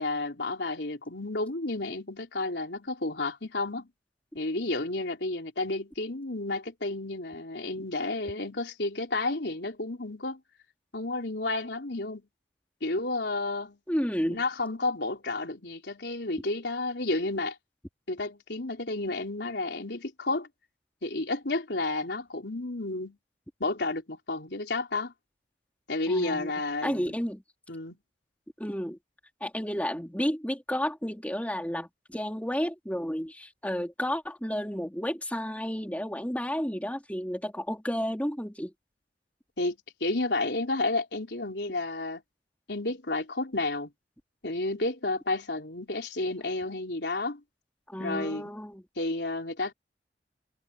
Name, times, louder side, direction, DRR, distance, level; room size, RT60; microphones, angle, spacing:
voice 1, 0.0-3.9 4.3-10.4 10.9-12.2 12.8-13.8 14.3-17.6 18.1-20.5 21.0-23.2 23.6-25.1 25.9-27.1 27.7-28.0 39.6-42.2 42.7-43.9 44.4-47.4 48.0-48.5 49.0-49.7, left 2 dB, 75° left, 3.9 m, -31 dB
voice 2, 13.9-14.4 26.1-26.5 26.8-27.4 28.6-29.0 29.4-38.7 47.9-48.8, equal, 10° left, 3.6 m, -31 dB
head